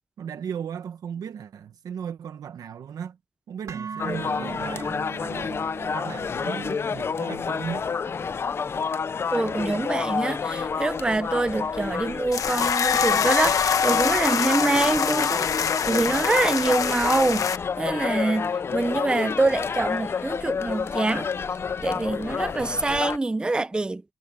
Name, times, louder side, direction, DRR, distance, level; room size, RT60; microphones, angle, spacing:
voice 1, 0.2-3.2 3.5-5.6 5.9-7.9, right 8 dB, 85° right, 1.0 m, -36 dB
sound 1, 3.7-11.8, right 6 dB, 60° right, 2.7 m, -42 dB
sound 2, 4.0-23.2, left 6 dB, 45° left, 0.5 m, -29 dB
voice 2, 9.3-15.5 15.9-21.3 21.8-24.0, right 2 dB, 15° right, 0.4 m, -25 dB
sound 3, 12.3-17.6, left 7 dB, 65° left, 1.2 m, -24 dB
wide cardioid pair, 130°, 6 cm